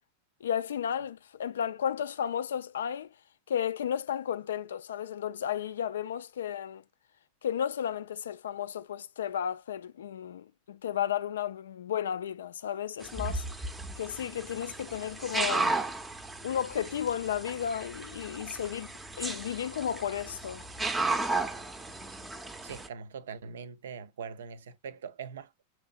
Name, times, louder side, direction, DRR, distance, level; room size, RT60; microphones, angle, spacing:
voice 1, 0.4-3.1 3.5-6.8 7.4-13.5 14.0-15.7 16.4-20.7, left 9 dB, 65° left, 0.3 m, -33 dB
sound 1, 13.0-22.9, right 3 dB, 10° right, 0.6 m, -35 dB
voice 2, 22.6-25.6, right 6 dB, 60° right, 0.4 m, -42 dB
6.2 x 2.8 x 2.5 m
figure-of-eight pair, 90°, 0 cm